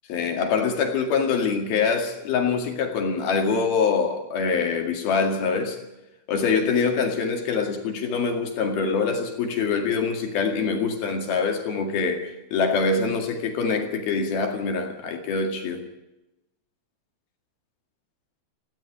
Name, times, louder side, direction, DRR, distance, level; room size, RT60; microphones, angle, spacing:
voice 1, 0.1-5.8 6.3-15.8, left 5 dB, 60° left, 3.6 m, -24 dB
17.0 x 15.0 x 10.0 m
omnidirectional pair, 5.3 m